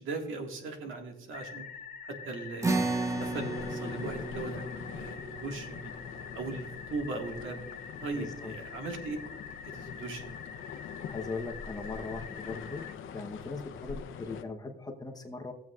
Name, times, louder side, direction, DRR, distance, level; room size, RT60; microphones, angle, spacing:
voice 1, 0.0-1.6 2.1-5.9 6.4-7.6 8.0-9.2 9.6-10.4, right 3 dB, 75° right, 3 dB, 1.8 m, -39 dB
sound 1, 1.3-12.9, left 6 dB, 40° left, 0.8 m, -46 dB
sound 2, 2.6-9.3, right 3 dB, 15° right, 0.8 m, -36 dB
sound 3, 3.0-14.4, left 8 dB, 75° left, 0.7 m, -44 dB
voice 2, 8.1-8.5 11.1-15.5, left 3 dB, 20° left, 3 dB, 0.9 m, -39 dB
16.5 x 7.7 x 2.4 m, 0.89 s
cardioid pair, 155°, 21 cm